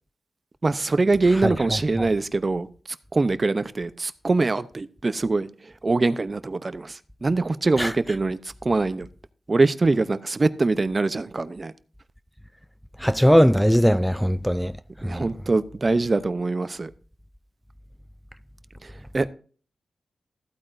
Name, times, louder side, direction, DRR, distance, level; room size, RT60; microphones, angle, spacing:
voice 1, 0.6-9.1 9.5-11.7 15.0-16.9 18.8-19.3, right 3 dB, 40° right, 0.6 m, -23 dB
voice 2, 13.0-15.3, equal, ahead, 0.3 m, -20 dB
14.5 x 8.7 x 2.6 m
cardioid pair, 65°, 0 cm